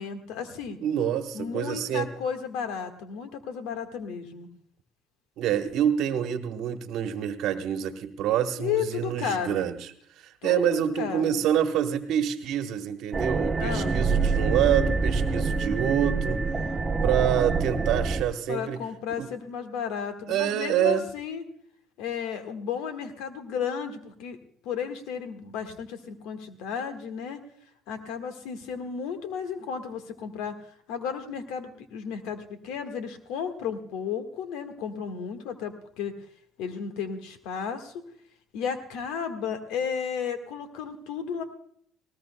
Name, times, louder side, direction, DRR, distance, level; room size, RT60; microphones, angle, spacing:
voice 1, 0.0-0.8 1.3-4.5 8.5-9.7 10.4-11.4 13.1-13.2 13.6-14.0 18.5-21.4 22.0-24.4 24.6-27.4 27.9-30.5 30.9-36.1 36.6-38.0 38.5-41.4, left 7 dB, 75° left, 7 dB, 1.6 m, -33 dB
voice 2, 0.8-2.1 5.4-9.8 10.2-16.4 17.0-18.8 19.2-19.3 20.3-21.0, right 10 dB, 70° right, 8 dB, 1.1 m, -27 dB
sound 1, 13.1-18.2, right 4 dB, 25° right, 1.0 m, -26 dB
19.5 x 19.5 x 2.3 m, 0.64 s
hypercardioid pair, 65°, 0 cm